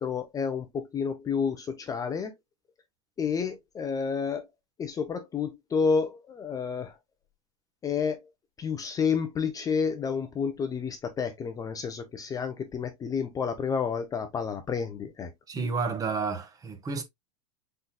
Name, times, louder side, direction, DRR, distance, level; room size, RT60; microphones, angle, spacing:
voice 1, 0.0-2.3 3.2-4.5 4.8-6.9 7.8-8.2 8.6-15.3, left 6 dB, 20° left, 0.7 m, -30 dB
voice 2, 15.5-17.0, right 4 dB, 20° right, 1.0 m, -30 dB
5.6 x 4.0 x 2.2 m
hypercardioid pair, 125°, 18 cm